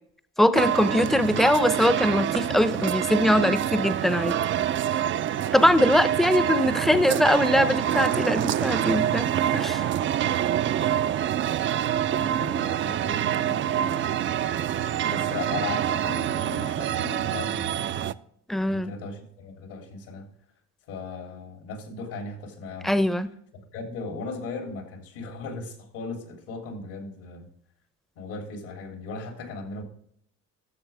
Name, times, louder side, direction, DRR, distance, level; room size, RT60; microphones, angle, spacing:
voice 1, 0.4-4.4 5.5-9.9 18.5-18.9 22.8-23.3, left 1 dB, ahead, 13 dB, 0.6 m, -22 dB
sound 1, 0.5-18.1, right 10 dB, 40° right, 0.4 m, -26 dB
voice 2, 12.1-14.2 15.0-18.1 18.7-20.3 20.9-23.0 23.5-27.4 28.1-29.8, left 3 dB, 80° left, 4 dB, 3.2 m, -37 dB
13.5 x 7.1 x 3.4 m, 0.68 s
cardioid pair, 105°, 30 cm